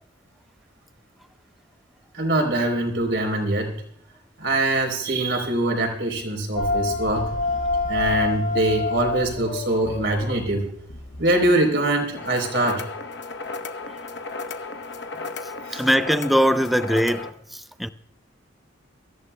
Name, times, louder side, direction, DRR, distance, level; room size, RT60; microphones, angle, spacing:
voice 1, 2.1-3.7 4.4-7.3 7.9-10.7 11.2-12.8 15.7-15.8, right 2 dB, 65° right, 3.6 m, -23 dB
sound 1, 6.6-11.5, left 3 dB, 75° left, 2.0 m, -27 dB
sound 2, 12.1-17.3, left 3 dB, 60° left, 0.9 m, -34 dB
voice 2, 15.7-17.9, equal, ahead, 0.4 m, -21 dB
24.0 x 14.5 x 2.2 m
head